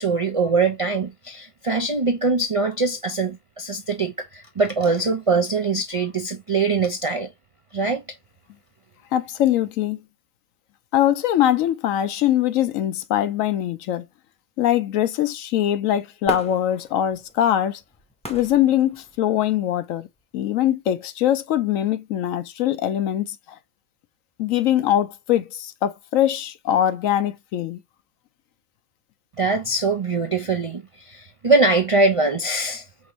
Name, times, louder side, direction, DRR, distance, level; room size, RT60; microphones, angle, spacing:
voice 1, 0.0-7.3 7.7-8.0 29.4-32.9, right 3 dB, 60° right, 0.3 m, -22 dB
voice 2, 9.1-10.0 10.9-14.0 14.6-17.8 18.3-20.1 20.3-23.4 24.4-27.8, left 11 dB, 75° left, 1.0 m, -22 dB
Fireworks, 16.2-19.6 20.1-20.2, equal, 5° left, 0.7 m, -37 dB
5.2 x 2.5 x 3.0 m
omnidirectional pair, 1.4 m